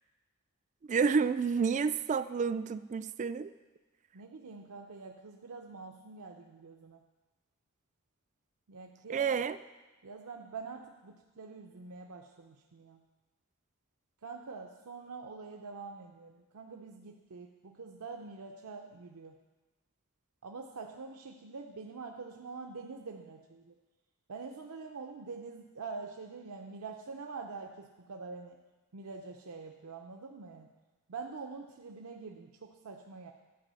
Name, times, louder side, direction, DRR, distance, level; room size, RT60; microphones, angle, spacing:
voice 1, 0.9-3.5 9.1-9.6, right 5 dB, 35° right, 13 dB, 0.3 m, -29 dB
voice 2, 4.1-7.0 8.7-9.3 10.0-13.0 14.2-19.3 20.4-23.7 24.3-28.6 28.9-30.7 31.1-33.3, right 4 dB, 80° right, 2 dB, 0.6 m, -45 dB
12.0 x 4.8 x 7.5 m, 1.2 s
head